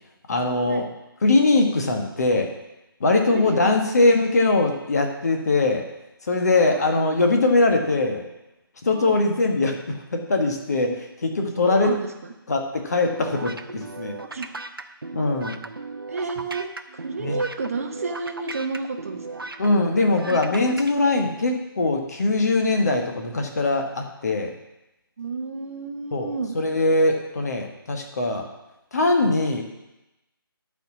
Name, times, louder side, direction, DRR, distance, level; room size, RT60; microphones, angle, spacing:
voice 1, 0.3-0.9 1.2-2.5 3.0-5.9 6.2-8.2 8.8-10.9 11.2-11.9 12.5-14.2 15.1-15.6 17.2-17.4 19.6-24.5 26.1-28.5 28.9-29.6, left 2 dB, 45° left, 3 dB, 1.3 m, -21 dB
voice 2, 3.1-3.7 7.5-7.6 8.9-9.2 10.9-11.0 11.6-12.1 14.2-14.6 16.1-19.5 20.2-20.5 25.2-26.5, right 4 dB, 35° right, 5 dB, 0.8 m, -31 dB
sound 1, 13.1-20.9, right 3 dB, 70° right, 0.7 m, -36 dB
11.5 x 4.7 x 6.0 m, 0.94 s
figure-of-eight pair, 150°, 12 cm